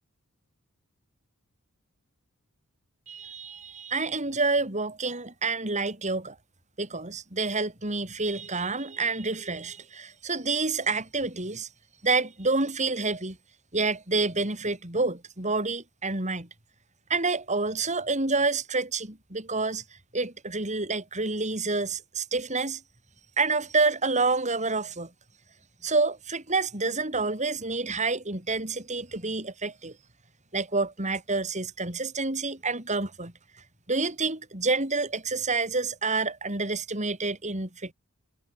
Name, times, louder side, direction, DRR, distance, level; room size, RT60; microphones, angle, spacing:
voice 1, 3.1-6.4 6.8-11.7 12.0-13.4 13.7-16.5 17.1-19.8 20.1-22.8 23.4-25.1 25.8-30.0 30.5-33.3 33.9-37.9, right 3 dB, 30° right, 5.3 m, -28 dB
head